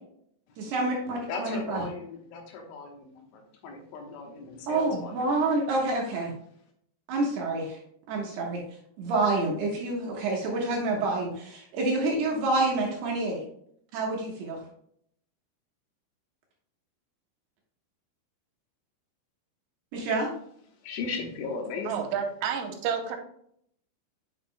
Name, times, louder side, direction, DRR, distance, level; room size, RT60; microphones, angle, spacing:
voice 1, 0.6-1.8 4.7-6.3 7.1-7.8 8.1-8.6 9.0-13.4 13.9-14.6 19.9-20.3, right 2 dB, 70° right, -2 dB, 2.8 m, -28 dB
voice 2, 1.3-5.3 20.8-21.9, left 4 dB, 80° left, 2 dB, 3.5 m, -37 dB
voice 3, 21.9-23.2, right 7 dB, 85° right, 4 dB, 3.3 m, -30 dB
8.9 x 6.6 x 2.2 m, 0.68 s
omnidirectional pair, 5.8 m